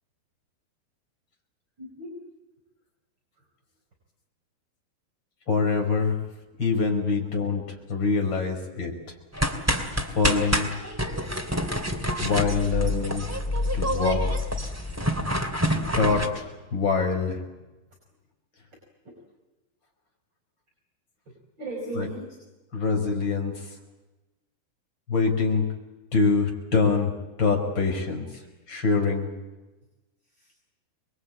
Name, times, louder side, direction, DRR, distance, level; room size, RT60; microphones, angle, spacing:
voice 1, 1.8-2.2 7.1-7.2 7.5-7.6 8.5-8.7 19.0-19.1 21.6-22.4 28.3-28.4 30.3-30.5, right 2 dB, 25° right, 0 dB, 5.6 m, -38 dB
voice 2, 5.5-6.2 6.6-7.6 7.9-8.9 10.2-10.7 12.2-13.3 13.7-14.4 16.0-17.4 22.0-22.1 22.7-23.6 25.1-25.6 26.1-27.1 27.4-28.3 28.7-29.3, left 4 dB, 25° left, 1 dB, 5.2 m, -24 dB
sound 1, 9.3-16.3, equal, 5° right, 1.5 m, -27 dB
26.0 x 22.0 x 8.7 m, 1.1 s
omnidirectional pair, 4.7 m